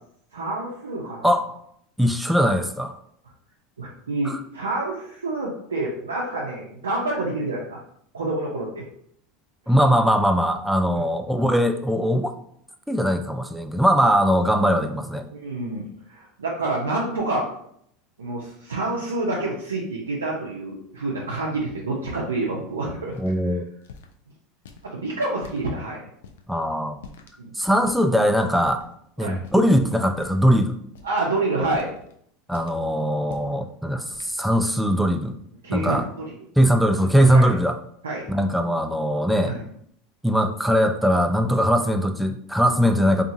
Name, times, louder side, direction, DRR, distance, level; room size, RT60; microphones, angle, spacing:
voice 1, 0.3-1.4 3.8-7.8 8.1-8.8 10.9-11.0 14.7-14.9 15.3-17.5 18.2-23.1 24.8-26.0 27.4-27.5 29.2-29.4 31.0-31.9 35.6-36.3 37.3-37.6 38.0-38.3 39.5-39.6, right 2 dB, 90° right, -4 dB, 0.4 m, -28 dB
voice 2, 2.0-3.0 4.2-4.4 9.7-12.3 12.9-15.3 23.2-23.6 26.5-27.0 27.6-28.8 29.2-30.7 32.5-35.4 35.7-36.0 36.6-37.8 38.3-39.5 40.2-43.2, equal, 5° right, 6 dB, 0.3 m, -20 dB
sound 1, 23.1-23.3 23.8-24.1 24.6-24.9 25.4-25.6 26.2-26.4 27.0-27.4 27.8-28.1 28.6-28.9 29.4-29.7 30.1-30.5 30.9-31.2 31.7-32.1 32.5-32.8 33.2-33.6 34.1-34.4, left 5 dB, 75° left, 0.3 m, -45 dB
2.7 x 2.3 x 2.5 m, 0.67 s
hypercardioid pair, 80°, 0 cm